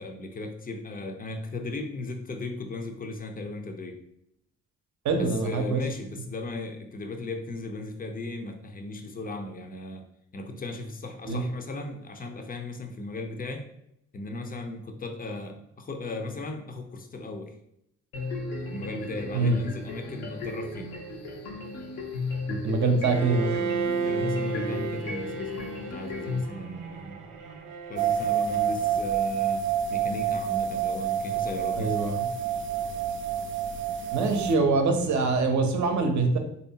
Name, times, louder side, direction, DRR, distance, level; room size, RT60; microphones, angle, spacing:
voice 1, 0.0-4.0 5.1-10.1 10.3-13.7 14.1-17.5 18.7-20.9 24.0-27.3 27.9-32.0, left 2 dB, 25° left, 5 dB, 0.6 m, -37 dB
voice 2, 5.0-5.8 11.3-11.4 19.3-19.6 22.5-23.5 31.8-32.3 34.1-36.4, right 3 dB, 50° right, 5 dB, 0.8 m, -24 dB
sound 1, 18.1-26.4, left 3 dB, 80° left, 0.9 m, -35 dB
Bowed string instrument, 23.0-29.0, right 5 dB, 85° right, 0.6 m, -33 dB
sound 2, 28.0-34.5, right 8 dB, 35° right, 0.4 m, -28 dB
3.3 x 2.8 x 2.8 m, 0.75 s
hypercardioid pair, 50°, 36 cm